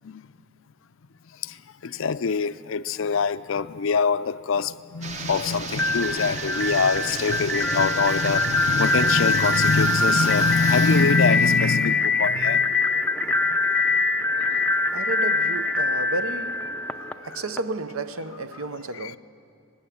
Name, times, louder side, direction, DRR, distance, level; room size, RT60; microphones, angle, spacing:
voice 1, 1.8-12.7 19.0-19.1, left 5 dB, 65° left, 0.5 m, -24 dB
sound 1, 5.0-11.6, right 4 dB, 30° right, 0.8 m, -35 dB
sound 2, 5.7-17.6, left 3 dB, 5° left, 0.5 m, -23 dB
voice 2, 14.2-19.2, right 2 dB, 75° right, 0.8 m, -33 dB
19.0 x 16.0 x 9.9 m
head